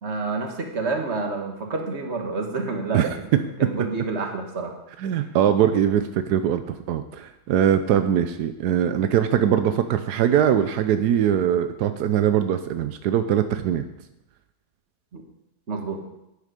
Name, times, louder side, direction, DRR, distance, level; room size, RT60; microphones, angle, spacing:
voice 1, 0.0-4.7 15.1-15.2 15.7-16.0, right 3 dB, 45° right, 3 dB, 1.9 m, -29 dB
voice 2, 5.0-13.8, right 9 dB, 85° right, 9 dB, 1.2 m, -21 dB
11.5 x 9.6 x 5.2 m, 0.90 s
omnidirectional pair, 1.7 m